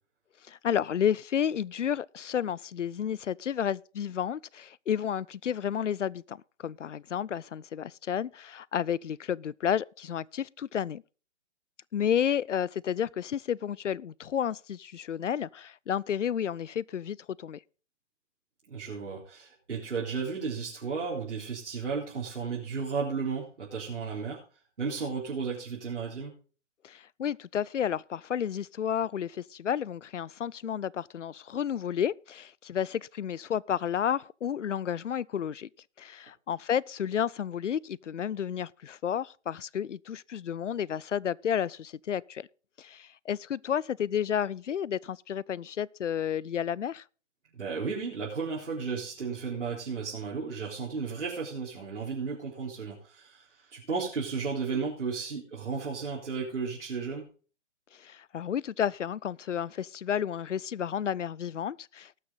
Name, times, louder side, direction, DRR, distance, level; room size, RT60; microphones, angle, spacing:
voice 1, 0.5-11.0 11.9-17.6 26.8-35.7 36.0-42.5 42.8-47.0 57.9-62.2, left 9 dB, 85° left, 0.5 m, -31 dB
voice 2, 18.7-24.4 24.8-26.3 47.5-57.2, right 5 dB, 70° right, 3.9 m, -34 dB
19.0 x 6.5 x 3.9 m
figure-of-eight pair, 135°, 36 cm